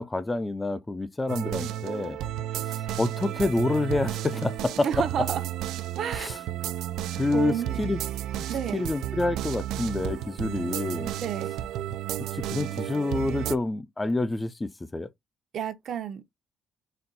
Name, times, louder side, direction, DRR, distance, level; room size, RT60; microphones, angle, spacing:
voice 1, 0.0-2.2 2.6-5.0 6.1-6.4 7.2-8.0 8.7-11.1 12.3-15.1, left 2 dB, 20° left, 0.5 m, -28 dB
sound 1, 1.3-13.6, right 12 dB, 85° right, 0.5 m, -32 dB
voice 2, 4.8-5.5 6.0-6.3 7.3-7.9 8.5-8.8 11.2-11.6 15.5-16.2, right 8 dB, 65° right, 0.9 m, -31 dB
4.2 x 2.4 x 4.0 m
cardioid pair, 90°, 0 cm